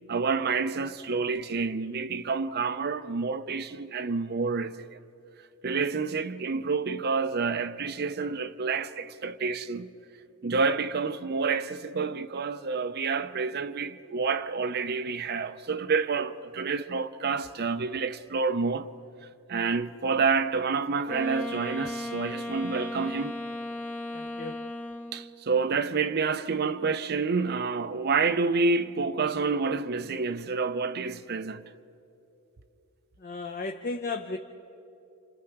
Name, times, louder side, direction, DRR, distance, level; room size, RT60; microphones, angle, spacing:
voice 1, 0.1-5.0 5.6-9.9 10.4-18.9 19.5-23.4 25.1-31.6, right 4 dB, 45° right, 0.6 m, -28 dB
Wind instrument woodwind instrument, 21.0-25.4, left 1 dB, 10° left, 1.0 m, -36 dB
voice 2, 24.1-24.6 33.2-34.4, left 3 dB, 40° left, 0.7 m, -34 dB
29.0 x 27.5 x 4.6 m
head